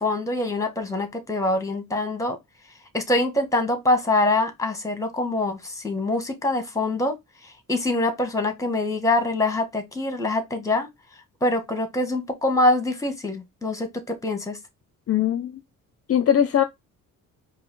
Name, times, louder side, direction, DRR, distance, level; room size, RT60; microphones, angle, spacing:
voice 1, 0.0-2.4 2.9-7.1 7.7-10.9 11.4-14.6, left 2 dB, 10° left, 1.5 m, -24 dB
voice 2, 15.1-15.6 16.1-16.6, left 9 dB, 45° left, 0.6 m, -20 dB
4.8 x 2.8 x 3.7 m
cardioid pair, 110°, 34 cm